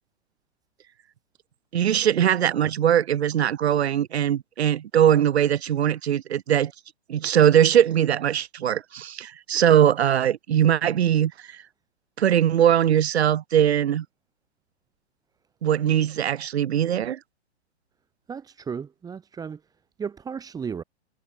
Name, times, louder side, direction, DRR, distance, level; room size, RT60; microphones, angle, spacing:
voice 1, 1.7-6.7 7.1-11.6 12.2-14.0 15.6-17.2, right 10 dB, 65° right, 1.6 m, -21 dB
voice 2, 18.3-19.6 20.0-20.8, right 6 dB, 10° right, 3.2 m, -34 dB
hypercardioid pair, 145°, 35 cm